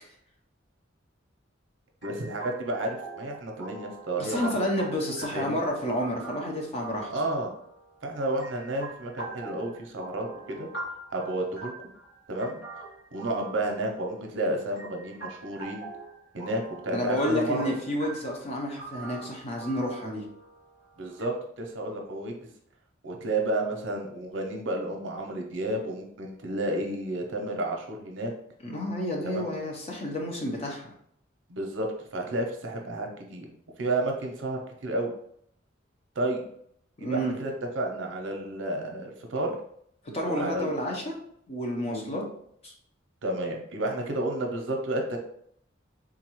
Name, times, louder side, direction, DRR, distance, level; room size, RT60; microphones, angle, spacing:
sound 1, 2.0-21.2, right 2 dB, 75° left, 1.4 m, -43 dB
voice 1, 2.0-4.6 5.3-5.6 7.1-7.5 8.0-10.7 11.1-11.7 12.3-12.6 13.1-15.9 16.3-17.8 21.0-22.3 23.0-28.3 29.3-29.4 31.5-33.5 33.8-35.1 36.2-36.4 37.0-39.6 40.2-40.8 41.9-42.2 43.2-45.2, right 1 dB, 70° right, 2 dB, 0.6 m, -31 dB
voice 2, 4.2-7.1 16.9-20.2 28.6-30.8 37.0-37.3 40.1-41.2 41.5-42.2 42.6-42.7, equal, 35° left, 0 dB, 0.7 m, -30 dB
3.7 x 2.3 x 3.0 m, 0.68 s
head